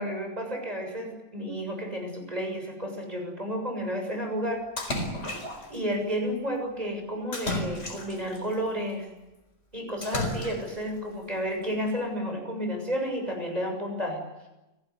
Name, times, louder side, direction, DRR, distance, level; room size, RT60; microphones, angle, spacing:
voice 1, 0.0-4.6 5.7-9.1 9.7-14.2, equal, 20° right, 3 dB, 7.1 m, -31 dB
Splash splatter, 4.8-5.8 7.3-8.4 10.0-10.8, left 1 dB, 40° left, 4.6 m, -32 dB
29.5 x 18.0 x 9.7 m, 1.0 s
omnidirectional pair, 2.0 m